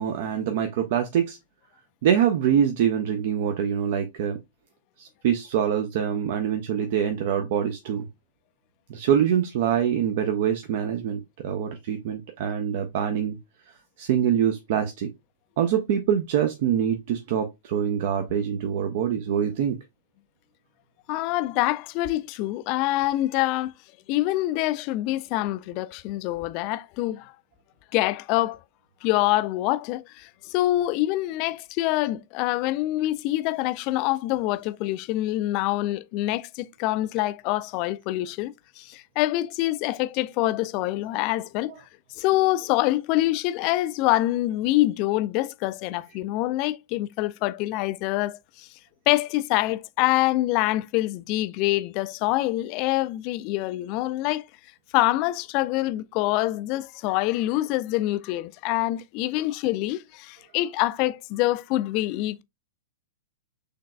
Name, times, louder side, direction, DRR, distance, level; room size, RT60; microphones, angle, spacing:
voice 1, 0.0-1.4 2.0-4.4 5.0-8.1 8.9-13.4 14.0-15.1 15.6-19.8 41.7-41.8, right 9 dB, 50° right, 0.6 m, -24 dB
voice 2, 21.1-23.7 24.1-27.3 27.9-28.6 29.0-41.7 42.2-48.7 49.1-54.5 54.9-62.4, left 16 dB, 40° left, 0.3 m, -25 dB
6.6 x 3.2 x 2.2 m
figure-of-eight pair, 105°, 0 cm